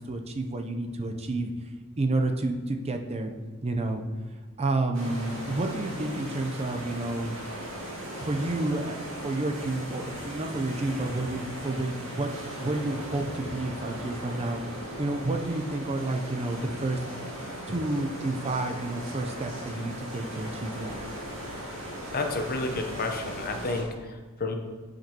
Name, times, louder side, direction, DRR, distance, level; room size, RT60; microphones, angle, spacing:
voice 1, 0.0-1.5 2.0-3.3 3.6-4.0 4.6-7.3 8.2-12.3 12.6-14.6 15.0-17.0 17.7-21.0, right 2 dB, 30° right, 4 dB, 0.5 m, -30 dB
sound 1, 4.9-23.8, equal, 65° right, 2.1 m, -38 dB
voice 2, 22.1-24.6, left 3 dB, 45° left, 4 dB, 0.8 m, -31 dB
9.0 x 5.2 x 2.9 m, 1.3 s
head